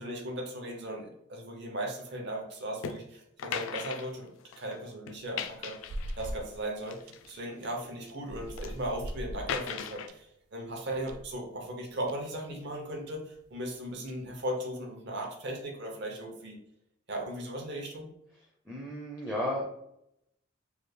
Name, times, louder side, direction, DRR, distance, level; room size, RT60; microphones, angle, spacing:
voice 1, 0.0-5.8 6.2-16.6 17.1-18.1, right 1 dB, 55° right, 1 dB, 0.7 m, -37 dB
sound 1, 2.8-3.0 3.4-4.8 5.1-6.4 6.8-7.9 8.3-8.8 9.5-10.1, left 7 dB, 65° left, 0.3 m, -38 dB
sound 2, 5.1-6.6 7.1-7.3 8.1-10.2 10.6-10.7 11.1-11.3 12.1-12.2 12.5-12.6 13.1-13.2 13.9-14.4, equal, 85° right, 0.4 m, -40 dB
voice 2, 18.7-19.6, left 1 dB, 5° right, -3 dB, 0.4 m, -33 dB
3.4 x 2.3 x 3.2 m, 0.77 s
head